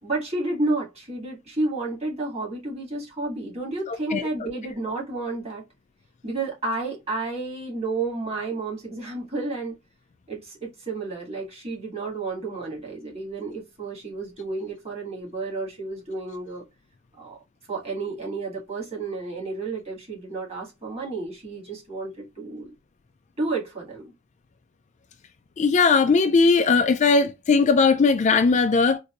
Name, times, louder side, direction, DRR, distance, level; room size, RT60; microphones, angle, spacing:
voice 1, 0.0-5.6 6.2-9.7 10.3-16.6 17.2-17.4 17.7-22.7 23.4-24.1, right 3 dB, 30° right, 1.8 m, -31 dB
voice 2, 3.9-4.2 25.6-29.0, left 4 dB, 35° left, 0.3 m, -19 dB
4.0 x 2.6 x 2.4 m
head